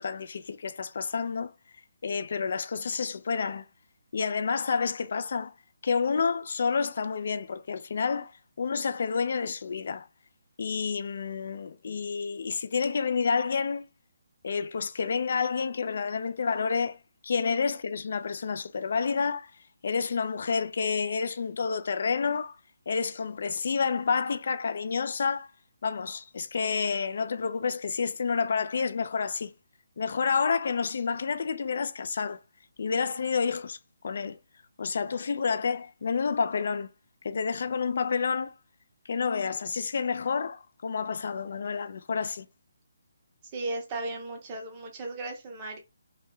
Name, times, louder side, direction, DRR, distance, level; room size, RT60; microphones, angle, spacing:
voice 1, 0.0-1.5 2.0-3.6 4.1-5.5 5.8-8.3 8.6-10.1 10.6-13.9 14.4-17.0 17.2-19.5 19.8-22.6 22.9-25.5 25.8-29.5 30.0-32.4 32.8-33.8 34.0-34.4 34.8-36.9 37.2-38.5 39.1-42.5, left 5 dB, 55° left, 0.3 m, -29 dB
voice 2, 43.5-45.8, right 2 dB, 25° right, 0.7 m, -35 dB
2.3 x 2.1 x 3.0 m
hypercardioid pair, 160°, 0 cm